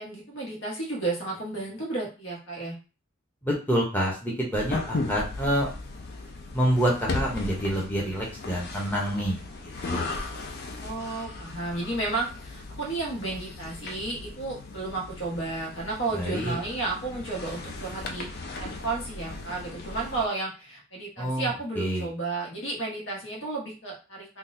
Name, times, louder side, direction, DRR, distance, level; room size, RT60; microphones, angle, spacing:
voice 1, 0.0-2.8 10.8-18.3 18.6-24.4, right 3 dB, 70° left, -2 dB, 1.2 m, -32 dB
voice 2, 3.4-5.7 6.5-10.2 16.1-16.6 21.2-22.1, equal, 10° left, -4 dB, 0.8 m, -27 dB
sound 1, 4.5-20.3, left 3 dB, 50° left, 0.4 m, -37 dB
3.8 x 2.3 x 2.6 m, 0.34 s
head